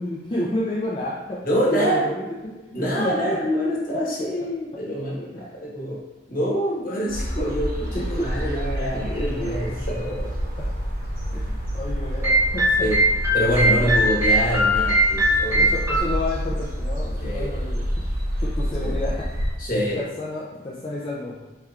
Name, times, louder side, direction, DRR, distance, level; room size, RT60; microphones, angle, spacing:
voice 1, 0.0-3.4 3.9-4.0 5.3-5.5 7.9-8.3 10.6-10.7 11.3-12.9 13.7-14.0 15.5-18.0 18.4-19.5 19.9-21.4, left 2 dB, 30° left, -6 dB, 0.4 m, -30 dB
voice 2, 1.4-2.0 2.7-6.0 6.3-10.3 12.8-13.0 13.3-15.6 17.2-17.5 18.8-18.9 19.6-20.0, equal, 50° left, -5 dB, 1.2 m, -25 dB
sound 1, 7.1-19.5, equal, 50° right, 0.8 m, -28 dB
sound 2, 12.2-16.0, equal, 15° right, 0.8 m, -20 dB
4.3 x 3.3 x 2.4 m, 1.1 s
head